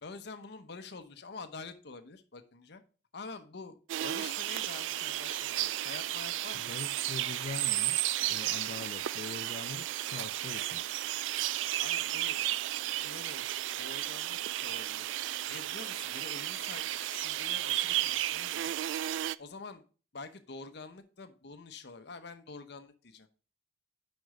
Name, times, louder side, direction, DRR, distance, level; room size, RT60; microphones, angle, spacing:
voice 1, 0.0-2.8 3.1-6.8 11.8-12.4 13.0-15.1 15.5-18.7 19.4-19.8 20.1-23.3, left 4 dB, 65° left, 0.8 m, -47 dB
sound 1, 3.9-19.4, right 14 dB, 85° right, 0.3 m, -33 dB
voice 2, 6.5-10.8, left 5 dB, 50° left, 0.3 m, -43 dB
6.3 x 5.4 x 4.9 m
head